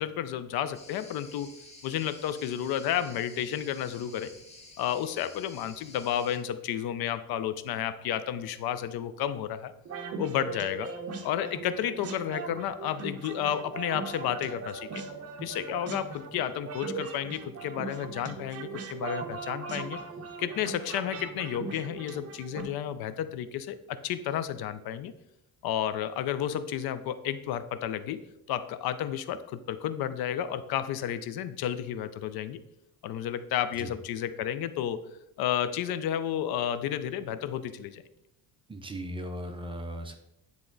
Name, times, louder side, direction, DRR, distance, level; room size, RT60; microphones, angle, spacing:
voice 1, 0.0-1.5 1.8-4.3 4.8-9.7 10.2-10.9 11.2-15.0 15.4-20.0 20.4-25.1 25.6-28.2 28.5-32.6 33.0-35.0 35.4-38.0, left 10 dB, 80° left, 13 dB, 0.6 m, -32 dB
sound 1, 0.7-6.4, left 2 dB, 20° left, 0.8 m, -51 dB
sound 2, 9.8-22.6, right 4 dB, 40° right, 0.8 m, -39 dB
voice 2, 38.7-40.1, equal, 15° right, 4 dB, 0.6 m, -37 dB
9.7 x 3.6 x 3.9 m, 0.84 s
cardioid pair, 160°, 37 cm